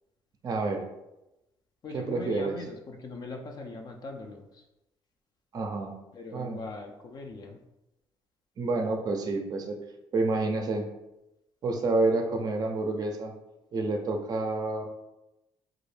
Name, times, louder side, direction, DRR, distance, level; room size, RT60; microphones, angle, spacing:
voice 1, 0.4-0.8 1.9-2.6 5.5-5.9 6.3-6.6 8.6-9.8 10.1-10.9 11.6-13.3 13.7-14.9, right 3 dB, 40° right, 4 dB, 0.4 m, -28 dB
voice 2, 1.8-4.4 6.1-7.6, left 3 dB, 45° left, 3 dB, 0.4 m, -41 dB
2.3 x 2.0 x 3.1 m, 0.93 s
cardioid pair, 95°, 10 cm